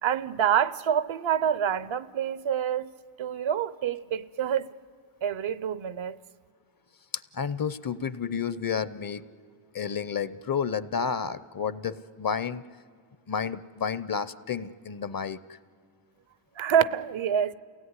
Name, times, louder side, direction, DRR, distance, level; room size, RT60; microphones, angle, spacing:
voice 1, 0.0-2.9 3.2-4.7 5.2-6.2 16.6-17.5, right 9 dB, 70° right, 0.7 m, -27 dB
voice 2, 7.3-9.2 9.7-12.6 13.3-15.4, left 6 dB, 45° left, 0.7 m, -31 dB
29.0 x 17.0 x 9.7 m
wide cardioid pair, 105°, 50 cm